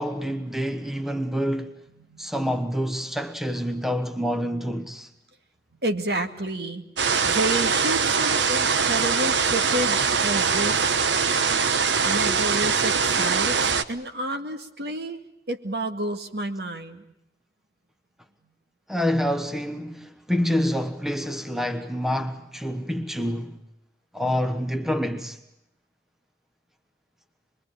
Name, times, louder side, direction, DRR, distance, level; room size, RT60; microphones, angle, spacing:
voice 1, 0.0-1.8 2.2-5.1 18.9-23.6 24.1-25.4, equal, ahead, 1.2 m, -27 dB
voice 2, 2.0-2.4 5.8-6.9 7.2-11.0 12.0-15.2 15.5-17.1 19.9-20.1, right 1 dB, 60° right, 2.2 m, -30 dB
sound 1, 7.0-13.8, right 5 dB, 85° right, 1.1 m, -22 dB
26.5 x 22.0 x 8.7 m
head